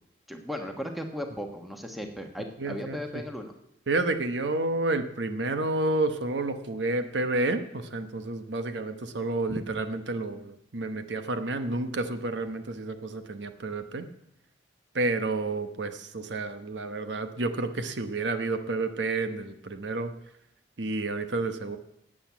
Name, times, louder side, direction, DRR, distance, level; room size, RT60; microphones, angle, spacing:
voice 1, 0.3-3.5 9.5-9.6, equal, ahead, 4 dB, 1.2 m, -36 dB
voice 2, 2.6-3.2 3.9-14.1 14.9-20.1 20.8-21.8, right 2 dB, 75° right, 8 dB, 1.0 m, -30 dB
12.0 x 8.7 x 8.4 m, 0.80 s
head